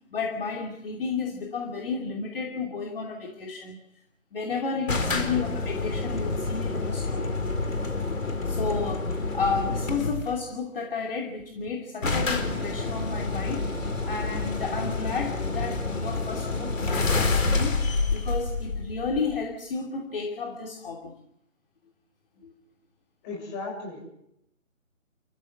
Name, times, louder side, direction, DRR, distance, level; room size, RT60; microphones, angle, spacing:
voice 1, 0.1-3.8 4.3-7.5 8.4-13.7 14.0-17.8 18.1-21.1 22.4-22.5, left 4 dB, 45° left, 1 dB, 3.1 m, -32 dB
sound 1, 4.9-10.4 11.4-11.5 11.7-11.8 12.0-19.5, left 3 dB, 70° left, 4.5 m, -28 dB
voice 2, 4.9-5.3 9.3-9.4 23.2-24.1, left 3 dB, 20° left, 1 dB, 6.4 m, -37 dB
29.0 x 15.0 x 7.9 m, 0.80 s
figure-of-eight pair, 155°, 40 cm